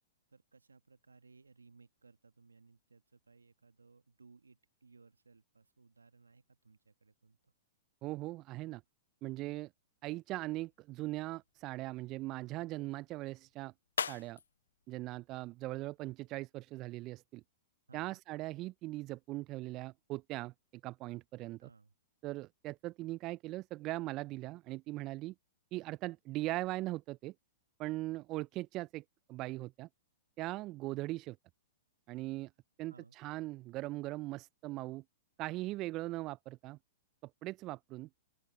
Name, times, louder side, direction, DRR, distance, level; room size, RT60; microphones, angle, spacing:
voice 1, 0.3-7.5 17.9-18.2 21.6-21.9 32.9-33.2, right 4 dB, 85° right, 1.6 m, -62 dB
voice 2, 8.0-8.8 9.2-9.7 10.0-13.7 14.1-14.4 14.9-17.4 17.9-20.5 20.8-21.7 22.2-25.3 25.7-27.3 27.8-29.0 29.3-29.9 30.4-31.4 32.1-32.5 32.8-35.0 35.4-36.8 37.2-38.1, right 18 dB, 35° right, 0.4 m, -40 dB
sound 1, 10.3-16.3, left 7 dB, 75° left, 0.9 m, -46 dB
open air
figure-of-eight pair, 110°, 0 cm